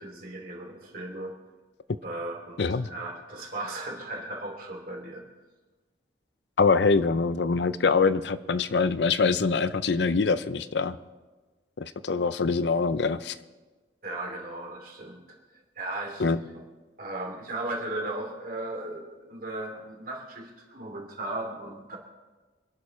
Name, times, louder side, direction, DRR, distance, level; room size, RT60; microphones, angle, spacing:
voice 1, 0.0-1.4 2.0-5.2 14.0-15.2 15.5-16.3 16.5-16.6 17.0-22.0, right 2 dB, 55° right, 1 dB, 2.8 m, -36 dB
voice 2, 2.6-2.9 6.6-11.0 11.8-13.3 16.2-16.4, left 4 dB, 70° left, 14 dB, 0.6 m, -24 dB
25.5 x 11.5 x 3.2 m, 1.2 s
head